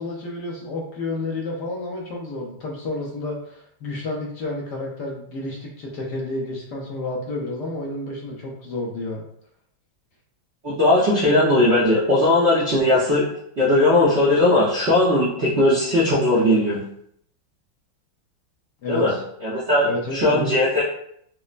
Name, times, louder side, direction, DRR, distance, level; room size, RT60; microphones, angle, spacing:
voice 1, 0.0-9.2 18.8-19.2 19.8-20.5, left 2 dB, 65° left, -2 dB, 1.2 m, -30 dB
voice 2, 10.6-13.3 13.6-16.8 18.9-19.1 19.4-20.8, left 1 dB, 55° right, -10 dB, 0.7 m, -18 dB
5.2 x 2.0 x 2.4 m, 0.69 s
omnidirectional pair, 2.2 m